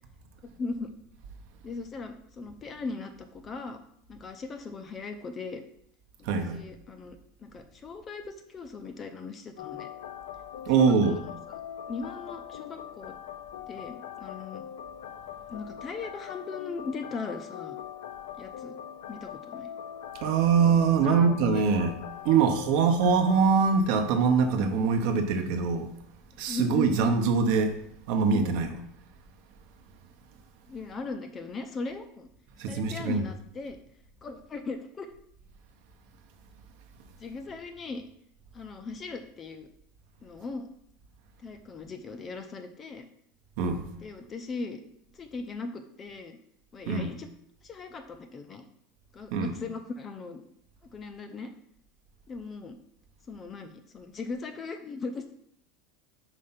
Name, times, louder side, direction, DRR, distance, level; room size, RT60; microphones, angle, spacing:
voice 1, 0.6-0.9 1.6-3.8 4.1-5.6 6.2-9.9 11.1-11.2 11.5-11.6 11.9-13.2 13.7-14.6 15.5-17.8 18.4-18.7 19.1-19.7 20.6-21.7 26.5-27.0 28.3-28.6 30.7-32.3 32.6-33.8 34.2-35.1 37.2-38.0 38.5-39.7 40.2-40.7 41.4-43.1 44.0-44.8 45.1-46.4 46.7-47.3 47.6-48.7 49.1-50.4 50.9-51.5 52.3-52.8 53.3-55.3, left 3 dB, 20° left, 0.5 m, -38 dB
voice 2, 6.2-6.6 10.7-11.2 20.2-21.9 22.2-25.9 26.4-27.8 28.1-28.8 32.6-33.3 43.6-43.9 46.9-47.1 49.3-49.5, right 5 dB, 55° right, 0.8 m, -23 dB
sound 1, 9.6-23.4, left 9 dB, 90° left, 0.5 m, -42 dB
5.0 x 4.4 x 5.7 m
supercardioid pair, 175°, 0 cm